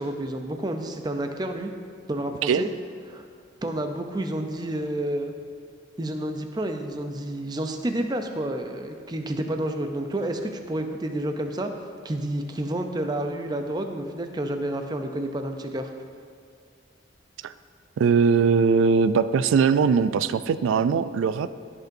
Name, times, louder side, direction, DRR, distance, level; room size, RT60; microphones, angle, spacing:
voice 1, 0.0-1.7 2.1-2.7 3.1-3.2 3.6-5.3 6.0-11.7 12.0-15.9, right 1 dB, 20° right, 5 dB, 0.5 m, -30 dB
voice 2, 18.0-21.6, right 5 dB, 90° right, 14 dB, 0.3 m, -21 dB
14.5 x 5.3 x 2.6 m, 2.2 s
head